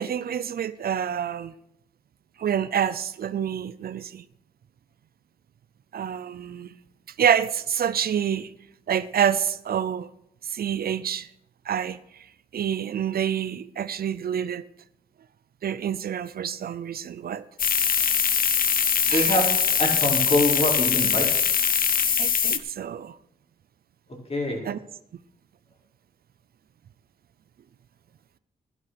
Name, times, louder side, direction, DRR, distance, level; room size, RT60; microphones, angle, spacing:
voice 1, 0.0-1.5 2.4-4.2 5.9-6.7 7.2-8.5 8.9-10.1 10.5-11.3 11.7-12.0 12.5-14.6 15.6-17.4 19.1-19.3 22.2-23.2 24.7-24.8, right 8 dB, 70° right, 0.5 m, -27 dB
sound 1, 17.6-22.6, left 7 dB, 60° left, 0.9 m, -22 dB
voice 2, 19.1-21.3 24.3-24.6, left 1 dB, 40° left, 4.8 m, -25 dB
11.5 x 11.5 x 6.1 m
cardioid pair, 50°, 16 cm